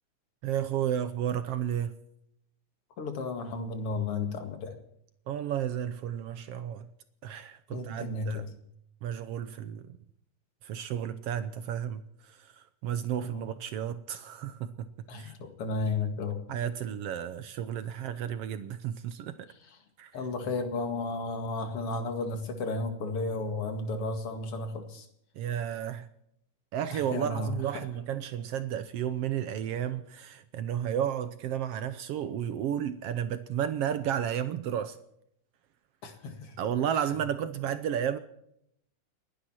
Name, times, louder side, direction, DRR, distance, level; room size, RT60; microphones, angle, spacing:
voice 1, 0.4-1.9 5.3-6.9 7.2-8.5 9.0-9.9 10.6-14.9 15.2-15.3 16.5-19.3 20.0-20.1 25.4-26.1 26.7-35.0 36.6-38.2, right 9 dB, 75° right, 1.4 m, -32 dB
voice 2, 3.0-4.7 7.7-8.5 13.2-13.4 15.1-16.4 20.1-25.1 26.9-27.8 36.0-36.5, left 3 dB, 50° left, 2.7 m, -33 dB
30.0 x 11.0 x 4.4 m
omnidirectional pair, 3.6 m